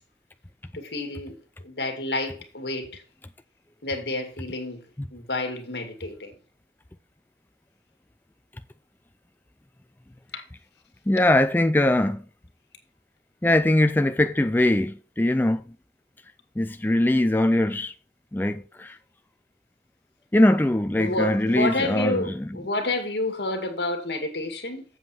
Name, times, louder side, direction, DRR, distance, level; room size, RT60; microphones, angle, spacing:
voice 1, 0.7-1.4 1.6-3.0 3.8-4.8 5.1-6.3 10.3-10.4 21.0-24.9, left 2 dB, 75° left, 2.1 m, -29 dB
voice 2, 11.1-12.2 13.4-15.6 16.6-17.9 18.3-19.0 20.3-22.3, left 1 dB, 10° left, 0.4 m, -21 dB
7.9 x 7.5 x 4.4 m
head